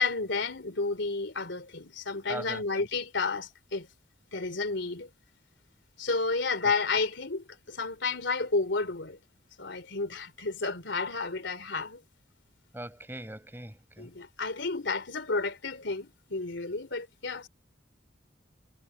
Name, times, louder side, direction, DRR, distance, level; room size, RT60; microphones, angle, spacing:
voice 1, 0.0-3.9 4.3-5.1 6.0-9.2 9.6-12.0 14.0-17.5, left 4 dB, 70° left, 3.2 m, -31 dB
voice 2, 2.3-2.8 6.6-6.7 12.7-14.1, right 1 dB, 10° right, 7.0 m, -41 dB
head